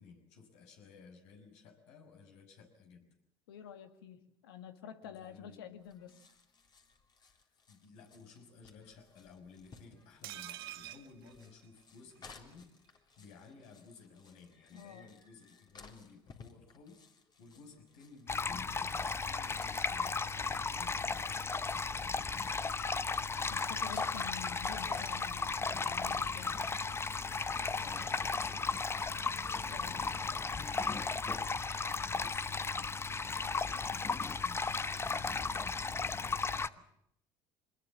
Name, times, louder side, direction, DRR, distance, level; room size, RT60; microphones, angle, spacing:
voice 1, 0.0-3.1 5.0-5.7 7.2-7.4 7.7-17.0 17.4-22.3 27.5-30.4 31.8-36.8, left 5 dB, 70° left, 4 dB, 5.8 m, -56 dB
voice 2, 3.5-6.2 14.7-15.1 23.5-26.6 29.7-30.0, left 8 dB, 85° left, 9 dB, 1.8 m, -49 dB
sound 1, 5.8-24.8, left 4 dB, 35° left, 3.6 m, -60 dB
sound 2, 10.2-12.2 12.5-12.6 12.9-13.0, right 15 dB, 85° right, 1.0 m, -47 dB
sound 3, 18.3-36.7, left 4 dB, 20° left, 0.9 m, -35 dB
24.0 x 20.5 x 7.3 m, 0.73 s
hypercardioid pair, 75°, 12 cm